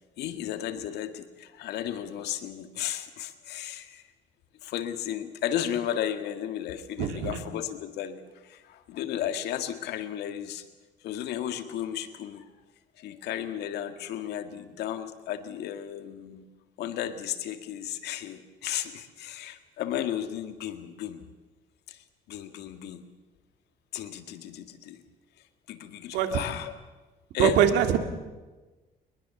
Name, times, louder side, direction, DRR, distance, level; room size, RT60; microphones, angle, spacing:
voice 1, 0.2-4.0 4.6-10.6 11.0-12.5 13.0-16.5 16.8-21.2 21.9-23.0 23.9-25.0 25.7-26.7 27.3-27.6, left 10 dB, 80° left, 8 dB, 1.9 m, -34 dB
voice 2, 7.0-7.4 26.1-26.4 27.4-28.0, right 9 dB, 90° right, 7 dB, 2.2 m, -23 dB
23.0 x 21.0 x 7.1 m, 1.2 s
cardioid pair, 110°, 17 cm